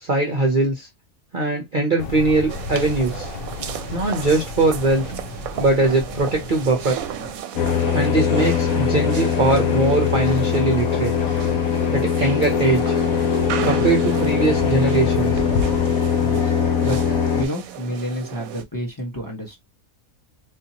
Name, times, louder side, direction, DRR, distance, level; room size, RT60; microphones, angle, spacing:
voice 1, 0.0-0.9 1.3-3.3 3.9-5.0 5.6-7.0 7.9-11.1 11.9-13.0 13.6-15.4, right 2 dB, 45° right, 0.7 m, -21 dB
sound 1, 2.0-7.4, left 3 dB, 50° left, 0.8 m, -34 dB
sound 2, 2.5-18.6, right 10 dB, 75° right, 1.0 m, -35 dB
sound 3, 7.6-17.5, left 7 dB, 70° left, 1.2 m, -21 dB
voice 2, 16.2-16.5 16.8-17.0 17.3-19.6, equal, 15° left, 0.9 m, -29 dB
3.6 x 2.7 x 2.8 m
omnidirectional pair, 1.6 m